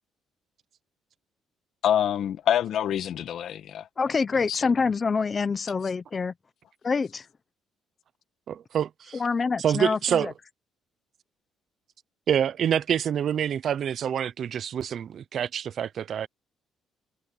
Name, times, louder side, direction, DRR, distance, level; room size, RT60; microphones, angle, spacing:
voice 1, 1.8-3.9 4.5-4.7, left 10 dB, 60° left, 1.6 m, -26 dB
voice 2, 4.0-6.3 6.8-7.2 9.2-10.3, left 5 dB, 25° left, 0.8 m, -26 dB
voice 3, 8.5-9.2 9.6-10.3 12.3-16.3, right 9 dB, 50° right, 0.6 m, -27 dB
cardioid pair, 140°, 0 cm